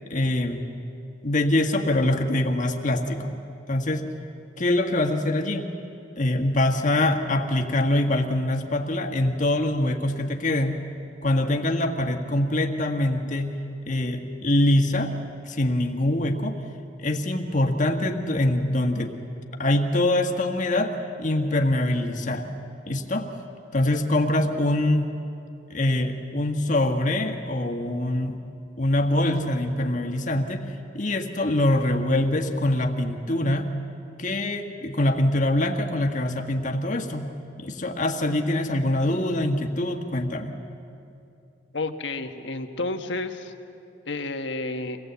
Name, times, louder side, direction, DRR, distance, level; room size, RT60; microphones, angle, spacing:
voice 1, 0.1-0.7 1.2-3.4 3.7-4.0 4.6-5.7 6.2-10.8 11.2-13.6 13.9-15.1 15.5-16.6 17.0-19.1 19.6-22.5 22.8-23.3 23.7-25.1 25.7-28.4 28.8-33.7 34.2-37.3 37.6-40.6, left 1 dB, 45° left, 4 dB, 1.5 m, -24 dB
voice 2, 41.7-43.5 44.1-45.0, left 2 dB, 80° left, 6 dB, 1.3 m, -30 dB
25.5 x 18.0 x 8.1 m, 2.6 s
head